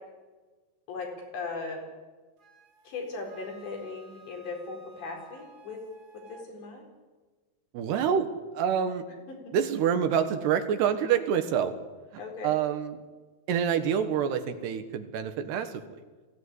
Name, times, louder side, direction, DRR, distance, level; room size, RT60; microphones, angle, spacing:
voice 1, 0.9-1.8 2.8-5.8 6.1-6.9 9.3-9.4 12.2-12.5, left 3 dB, 85° left, 1 dB, 6.9 m, -38 dB
Wind instrument woodwind instrument, 2.4-6.5, right 2 dB, 50° right, 2.0 m, -55 dB
voice 2, 7.7-8.3 8.5-9.0 9.5-11.7 12.1-13.0 13.5-16.0, right 8 dB, 75° right, 8 dB, 3.4 m, -27 dB
20.5 x 16.5 x 9.8 m, 1.3 s
omnidirectional pair, 4.9 m